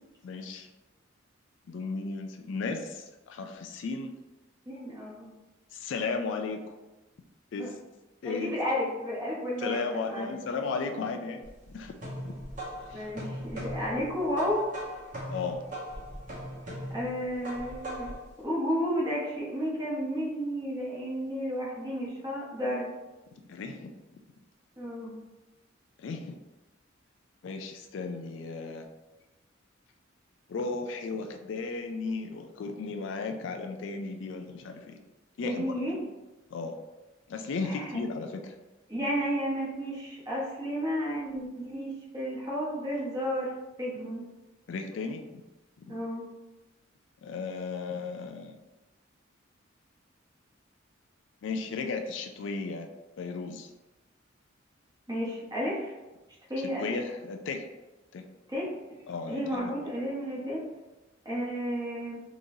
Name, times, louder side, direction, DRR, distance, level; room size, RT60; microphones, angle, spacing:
voice 1, 0.2-0.7 1.7-4.1 5.7-6.8 7.5-7.8 8.2-8.5 9.6-11.9 12.2-12.3 12.9-13.1 15.3-15.6 23.3-23.9 26.0-26.3 27.4-28.9 30.5-35.0 35.4-35.7 36.5-36.8 37.3-38.5 44.7-45.4 45.8-45.9 47.2-48.6 51.4-52.9 53.2-53.7 56.8-57.7 58.1-58.2 59.1-59.7, left 4 dB, 65° left, 5 dB, 0.3 m, -35 dB
voice 2, 4.7-5.3 7.6-7.7 8.2-10.3 12.9-14.7 16.9-18.1 18.4-22.9 24.8-25.1 35.4-36.0 37.6-37.9 38.9-43.5 43.8-44.2 45.9-46.2 55.1-55.9 56.5-56.9 58.5-58.7 59.3-60.6 61.2-62.2, equal, 20° right, -6 dB, 1.0 m, -32 dB
sound 1, 11.4-18.3, equal, 40° right, 1.1 m, -39 dB
3.6 x 3.0 x 2.6 m, 1.1 s
head